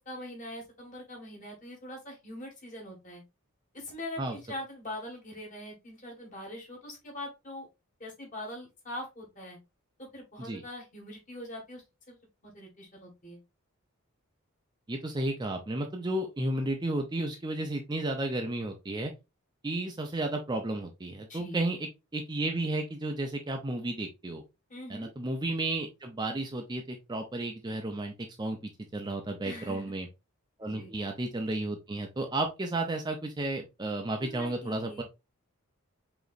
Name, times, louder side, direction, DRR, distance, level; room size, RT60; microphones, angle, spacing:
voice 1, 0.0-3.2 3.7-7.7 8.0-9.6 10.0-12.2 12.4-13.4 21.3-21.6 24.7-25.1 29.4-29.9 30.6-30.9 34.2-35.0, left 1 dB, 35° left, 0 dB, 1.7 m, -42 dB
voice 2, 14.9-19.1 19.6-24.4 24.9-28.6 28.9-30.1 30.6-35.0, right 2 dB, 20° right, 3 dB, 0.5 m, -33 dB
5.0 x 2.9 x 2.5 m, 0.25 s
head